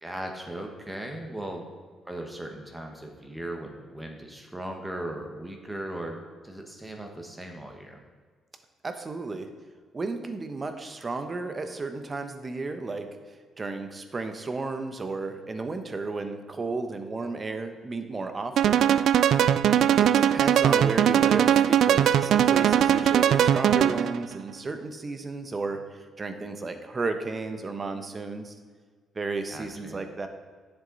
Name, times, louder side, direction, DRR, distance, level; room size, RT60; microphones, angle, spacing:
voice 1, 0.0-1.7 2.0-6.2 6.4-8.0 29.5-30.1, right 1 dB, 10° right, 2 dB, 1.5 m, -38 dB
voice 2, 8.8-9.5 9.9-13.1 13.6-18.8 20.0-28.5 29.1-30.3, right 3 dB, 30° right, 7 dB, 1.0 m, -33 dB
sound 1, 18.6-24.2, right 9 dB, 75° right, 0.3 m, -20 dB
10.5 x 7.3 x 4.1 m, 1.5 s
cardioid pair, 90°, 0 cm